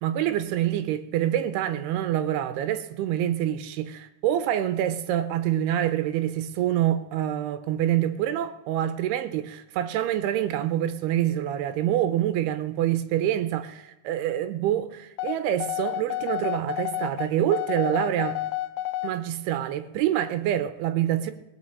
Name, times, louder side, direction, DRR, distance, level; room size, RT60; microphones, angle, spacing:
voice 1, 0.0-18.4 19.0-21.3, right 11 dB, 85° right, 2.7 m, -26 dB
sound 1, 15.2-19.2, left 15 dB, 85° left, 2.7 m, -30 dB
18.0 x 6.7 x 8.7 m
omnidirectional pair, 4.8 m